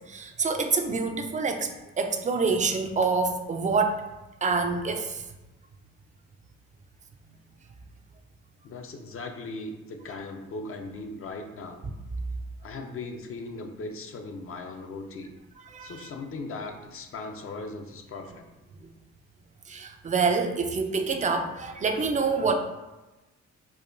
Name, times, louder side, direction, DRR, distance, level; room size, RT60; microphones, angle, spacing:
voice 1, 0.1-1.7 2.0-4.0 4.4-5.2 15.7-16.1 19.7-22.5, right 4 dB, 25° right, 6 dB, 0.4 m, -26 dB
voice 2, 8.6-11.8 12.6-15.4 15.8-18.4, left 3 dB, 45° left, 4 dB, 0.5 m, -38 dB
4.7 x 2.2 x 2.5 m, 1.1 s
cardioid pair, 90°, 30 cm